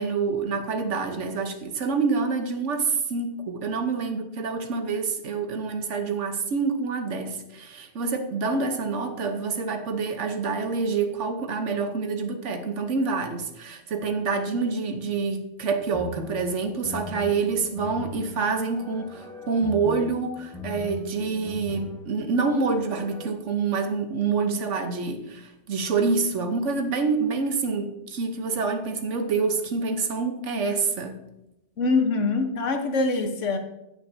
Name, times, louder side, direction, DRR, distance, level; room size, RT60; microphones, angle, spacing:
voice 1, 0.0-31.2, right 4 dB, 80° right, 6 dB, 1.3 m, -27 dB
sound 1, 15.9-23.3, left 1 dB, 5° left, 1.1 m, -40 dB
voice 2, 31.8-33.6, left 3 dB, 85° left, 5 dB, 1.4 m, -24 dB
17.0 x 5.9 x 2.7 m, 0.90 s
omnidirectional pair, 1.2 m